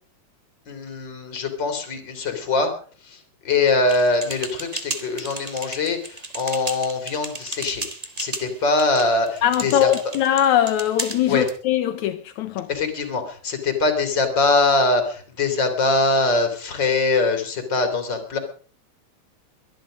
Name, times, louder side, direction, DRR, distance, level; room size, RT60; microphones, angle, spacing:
voice 1, 0.7-2.7 3.0-7.8 8.2-9.9 11.2-11.5 12.7-18.4, left 3 dB, 40° left, 3.4 m, -22 dB
sound 1, 3.9-11.6, right 3 dB, 30° right, 0.6 m, -34 dB
voice 2, 9.4-12.7, left 11 dB, 80° left, 2.2 m, -21 dB
22.5 x 11.0 x 5.1 m
omnidirectional pair, 3.3 m